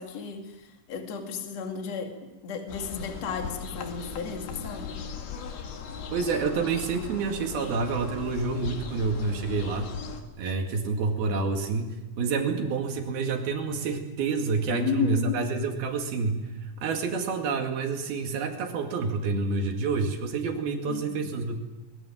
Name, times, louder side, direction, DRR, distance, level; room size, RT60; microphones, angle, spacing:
voice 1, 0.0-2.2 2.4-5.0 14.7-15.4 20.9-21.3, left 5 dB, 50° left, 4 dB, 3.1 m, -33 dB
sound 1, 2.7-10.2, left 5 dB, 80° left, 4.0 m, -38 dB
voice 2, 6.1-9.9 10.4-21.6, right 4 dB, 75° right, 3 dB, 4.0 m, -28 dB
22.0 x 21.5 x 7.6 m, 1.0 s
omnidirectional pair, 4.4 m